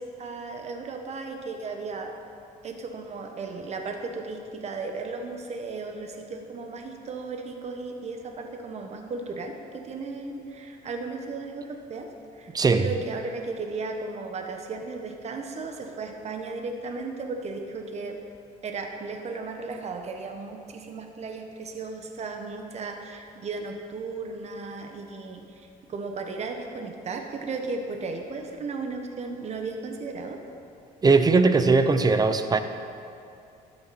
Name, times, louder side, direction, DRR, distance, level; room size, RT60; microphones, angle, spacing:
voice 1, 0.0-2.1 2.6-12.1 12.4-18.2 18.6-30.4, right 3 dB, 40° right, 4 dB, 1.2 m, -35 dB
voice 2, 31.0-32.6, right 4 dB, 25° right, 9 dB, 0.7 m, -19 dB
12.5 x 9.5 x 4.3 m, 2.5 s
cardioid pair, 110°, 17 cm